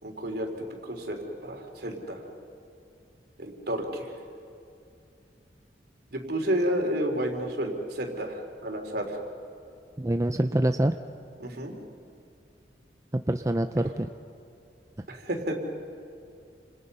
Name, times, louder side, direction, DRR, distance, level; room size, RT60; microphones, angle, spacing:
voice 1, 0.0-2.2 3.4-4.1 6.1-9.2 11.4-11.7 15.1-15.5, equal, 65° right, 3 dB, 3.8 m, -31 dB
voice 2, 10.0-11.0 13.3-14.1, right 1 dB, 20° right, 7 dB, 0.6 m, -25 dB
29.0 x 27.5 x 5.6 m, 2.6 s
head